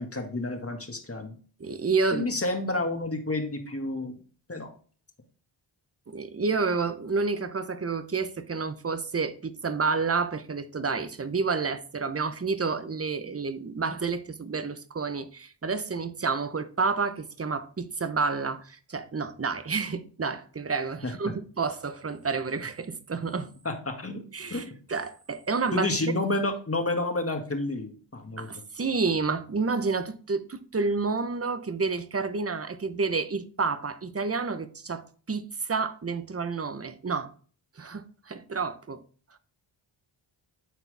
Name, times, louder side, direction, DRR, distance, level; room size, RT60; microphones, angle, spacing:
voice 1, 0.0-1.4 2.1-4.2 4.5-4.7 21.0-21.1 23.7-24.2 24.5-24.7 25.7-28.5, left 2 dB, 25° left, 1.9 m, -30 dB
voice 2, 1.6-2.2 6.1-23.5 24.3-26.1 28.4-37.3 37.8-39.0, right 4 dB, 30° right, 0.9 m, -29 dB
11.5 x 4.5 x 3.5 m
cardioid pair, 60°, 50 cm